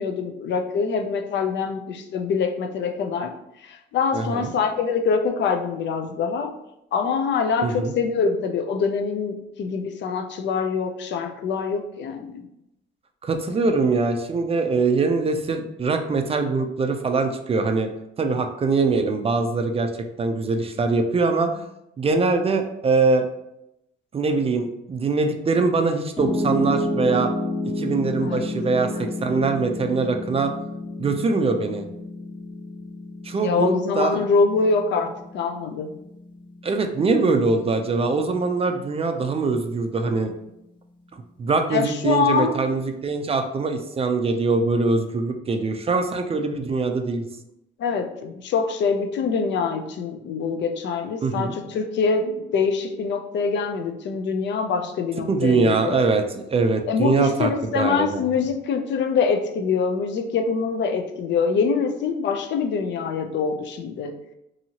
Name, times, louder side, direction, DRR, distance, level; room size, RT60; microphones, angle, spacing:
voice 1, 0.0-3.3 3.6-6.5 6.9-12.4 28.2-28.4 28.9-29.0 33.4-36.0 41.7-42.5 47.8-56.0 56.9-64.1, left 5 dB, 65° left, 6 dB, 0.4 m, -24 dB
voice 2, 4.1-4.5 7.6-7.9 13.2-17.9 18.2-19.9 20.2-21.6 22.0-23.3 24.1-27.3 27.8-30.5 31.0-31.8 33.2-34.2 36.6-40.3 41.4-47.3 51.2-51.5 55.3-58.2, right 4 dB, 30° right, 6 dB, 0.3 m, -23 dB
Piano, 26.2-38.3, left 2 dB, 25° left, 1.1 m, -31 dB
2.7 x 2.7 x 2.8 m, 0.85 s
cardioid pair, 90°, 20 cm